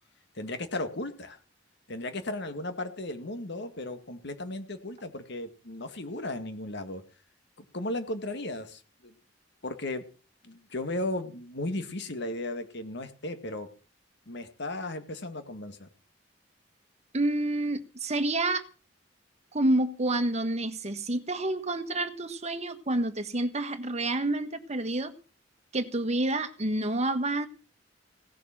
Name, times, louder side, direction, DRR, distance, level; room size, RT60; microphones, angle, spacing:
voice 1, 0.3-1.4 1.9-7.0 7.7-9.2 9.6-10.0 10.4-13.7 14.3-15.9, left 2 dB, 65° left, 9 dB, 2.0 m, -35 dB
voice 2, 17.1-18.6 19.5-25.1 25.7-27.5, right 2 dB, 35° right, 9 dB, 1.4 m, -28 dB
17.0 x 7.2 x 7.4 m, 0.37 s
head